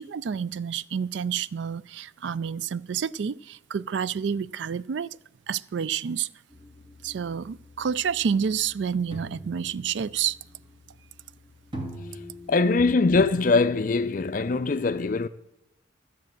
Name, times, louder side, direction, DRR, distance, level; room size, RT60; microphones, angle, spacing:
voice 1, 0.0-5.2 5.5-6.3 7.0-10.4, right 7 dB, 65° right, 0.4 m, -29 dB
sound 1, 6.5-13.3, right 1 dB, 25° right, 2.0 m, -44 dB
voice 2, 12.5-15.3, left 3 dB, 45° left, 0.4 m, -22 dB
13.5 x 7.3 x 7.6 m
head